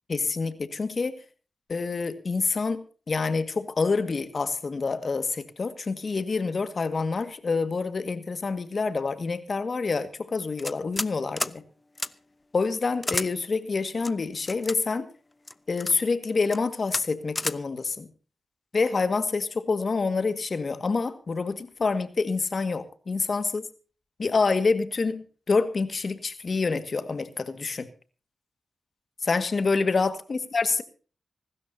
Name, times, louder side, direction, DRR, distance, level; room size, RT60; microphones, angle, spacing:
voice 1, 0.1-1.2 1.7-11.6 12.5-15.0 15.7-18.1 18.7-23.6 24.2-27.9 29.2-30.8, left 4 dB, 55° left, 11 dB, 1.8 m, -27 dB
sound 1, 10.6-11.1 11.4-11.6 12.0-12.1 13.0-13.3 14.0-14.8 15.5-15.9 16.4-16.6 16.9-17.0 17.4-17.6, left 2 dB, 25° left, 0.8 m, -30 dB
25.5 x 13.0 x 2.7 m, 0.38 s
cardioid pair, 55°, 0 cm